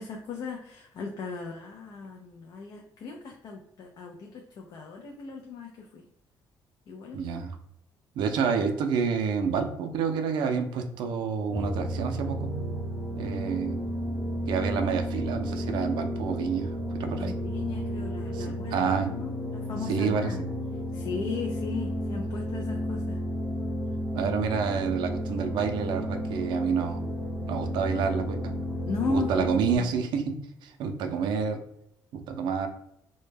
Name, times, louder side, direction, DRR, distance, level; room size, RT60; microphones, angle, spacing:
voice 1, 0.0-6.1 6.9-7.2 17.2-20.4 20.9-23.2 28.8-29.5 29.7-30.0, left 4 dB, 55° left, 0 dB, 0.4 m, -36 dB
voice 2, 7.1-7.6 8.2-12.5 13.2-13.8 14.5-17.3 18.3-19.1 19.9-20.3 24.1-27.0 27.5-28.5 29.1-30.4 30.6-31.6 32.1-32.7, right 6 dB, 80° right, 6 dB, 0.4 m, -28 dB
sound 1, 11.5-29.8, equal, 5° right, 0.7 m, -32 dB
2.1 x 2.1 x 3.2 m, 0.75 s
cardioid pair, 155°, 8 cm